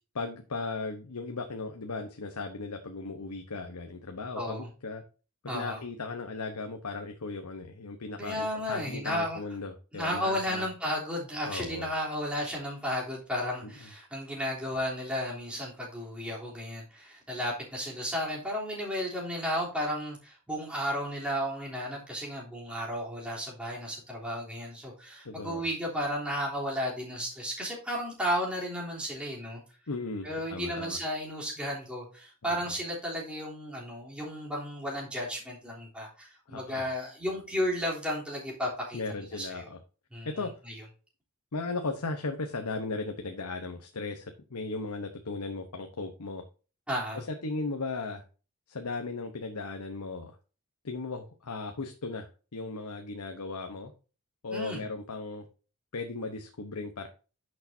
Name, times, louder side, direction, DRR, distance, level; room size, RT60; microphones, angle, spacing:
voice 1, 0.1-5.0 5.4-10.7 11.5-11.9 13.6-13.7 25.2-25.6 29.9-31.0 32.5-32.6 36.5-36.8 38.9-39.8 40.2-40.5 41.5-46.4 47.1-48.2 48.7-50.4 50.8-53.9 54.4-55.5 55.9-57.1, left 3 dB, 90° left, 1.0 m, -36 dB
voice 2, 4.3-4.7 5.5-5.8 8.2-9.4 9.9-29.6 30.2-39.7 40.1-40.3 40.6-40.7 46.9-47.2 54.5-54.8, equal, 5° right, 3.3 m, -33 dB
10.5 x 6.6 x 2.7 m
head